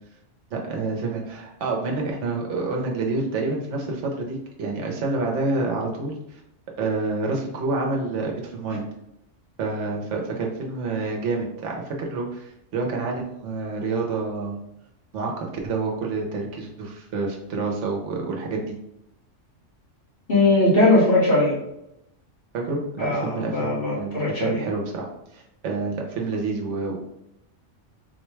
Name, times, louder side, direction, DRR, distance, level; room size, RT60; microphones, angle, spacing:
voice 1, 0.5-6.4 6.8-8.8 9.6-14.5 15.1-18.6 22.5-25.1 25.3-27.0, right 3 dB, 70° right, 0 dB, 1.0 m, -28 dB
voice 2, 20.3-21.5 23.0-24.6, left 2 dB, 50° left, -7 dB, 1.4 m, -20 dB
3.9 x 2.2 x 3.1 m, 0.83 s
omnidirectional pair, 1.3 m